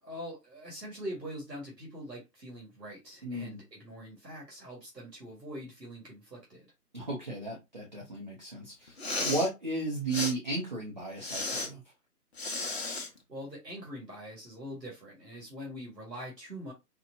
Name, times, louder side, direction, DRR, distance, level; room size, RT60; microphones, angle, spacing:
voice 1, 0.0-6.7 13.3-16.7, equal, 90° right, 1.7 m, -43 dB
voice 2, 3.2-3.6 6.9-11.8, right 2 dB, 30° right, 0.6 m, -34 dB
Respiratory sounds, 8.9-9.5 10.1-10.3 11.2-11.7 12.4-13.1, left 3 dB, 40° left, 0.8 m, -33 dB
4.3 x 2.2 x 2.7 m
figure-of-eight pair, 145°, 48 cm